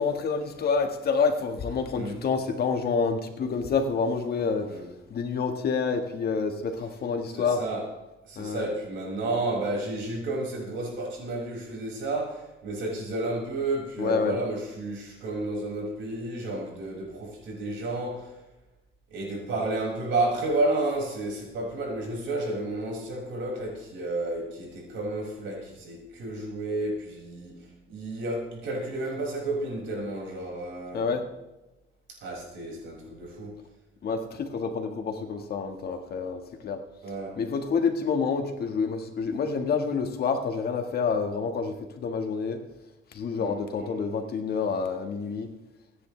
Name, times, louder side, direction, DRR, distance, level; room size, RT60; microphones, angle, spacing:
voice 1, 0.0-4.7 5.1-7.6 8.4-8.6 14.0-14.4 30.9-31.2 34.0-36.8 37.4-42.6 43.1-45.5, left 5 dB, 50° left, 5 dB, 1.6 m, -28 dB
voice 2, 7.3-7.9 8.2-18.4 19.1-31.1 32.1-33.6 37.0-37.4 43.4-43.6, right 2 dB, 70° right, -1 dB, 5.9 m, -31 dB
26.0 x 10.0 x 3.3 m, 1.0 s
cardioid pair, 145°, 20 cm